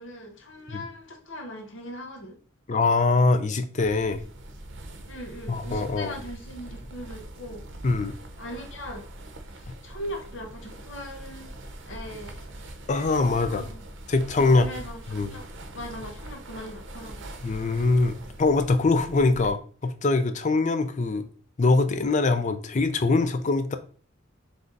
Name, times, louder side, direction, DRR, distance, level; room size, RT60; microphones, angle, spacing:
voice 1, 0.0-2.4 5.1-7.6 8.4-9.0 9.5-11.6 11.9-12.4 13.4-13.8 14.3-15.5 15.7-17.3, equal, 65° left, 1.0 m, -40 dB
voice 2, 2.7-4.2 5.5-6.1 7.8-8.1 12.9-13.6 14.1-14.7 15.1-15.3 17.4-21.3 21.6-23.8, left 3 dB, 35° left, 0.5 m, -23 dB
sound 1, 3.8-19.5, right 1 dB, 60° right, 0.7 m, -42 dB
3.8 x 3.4 x 3.9 m
head